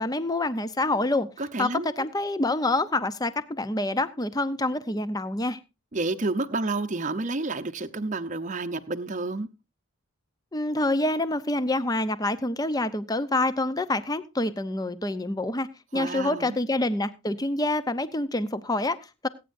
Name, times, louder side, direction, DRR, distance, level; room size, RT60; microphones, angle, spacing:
voice 1, 0.0-1.3 1.6-5.6 10.5-19.3, left 2 dB, 15° left, 0.6 m, -27 dB
voice 2, 1.4-2.1 5.9-9.5 15.9-16.6, right 2 dB, 35° right, 0.7 m, -30 dB
21.5 x 9.1 x 2.5 m
head